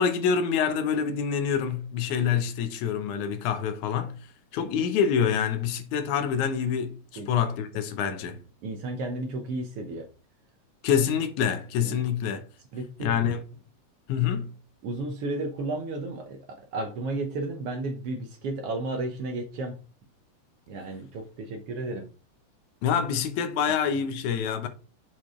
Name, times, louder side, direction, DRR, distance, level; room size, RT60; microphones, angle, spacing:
voice 1, 0.0-4.3 4.5-8.4 10.8-12.4 13.0-13.4 14.1-14.6 22.8-24.7, left 7 dB, 90° left, 2.3 m, -26 dB
voice 2, 8.3-10.1 11.8-12.0 12.7-13.2 14.8-19.8 20.7-22.1, right 2 dB, 65° right, 1.6 m, -33 dB
6.6 x 4.6 x 3.6 m
omnidirectional pair, 3.3 m